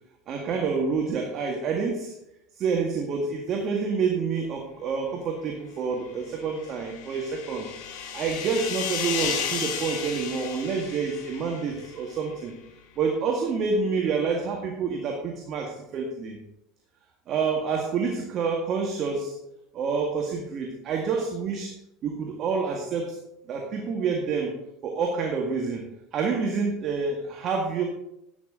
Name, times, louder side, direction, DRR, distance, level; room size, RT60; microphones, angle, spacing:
voice 1, 0.3-2.2 2.5-12.5 13.0-16.4 17.3-19.4 19.7-21.7 22.0-23.2 23.5-24.5 24.8-27.8, right 5 dB, 45° right, 1 dB, 1.9 m, -28 dB
sound 1, 6.4-12.0, left 7 dB, 60° left, 3.6 m, -33 dB
11.5 x 9.2 x 3.9 m, 0.84 s
hypercardioid pair, 80°, 0 cm